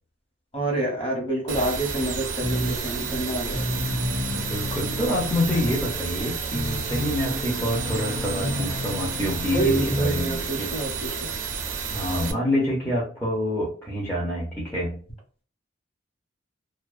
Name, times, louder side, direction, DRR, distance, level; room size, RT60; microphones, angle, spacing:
voice 1, 0.5-3.7 7.3-7.6 9.5-11.1, right 2 dB, 30° left, -1 dB, 1.1 m, -28 dB
sound 1, 1.5-12.3, right 5 dB, 70° right, 0.5 m, -31 dB
sound 2, 1.8-11.3, equal, 80° left, 1.2 m, -33 dB
sound 3, 2.5-10.2, left 3 dB, 55° left, 0.5 m, -36 dB
voice 2, 4.3-10.7 11.9-15.0, left 1 dB, 10° left, -6 dB, 0.6 m, -27 dB
2.5 x 2.2 x 2.4 m, 0.40 s
head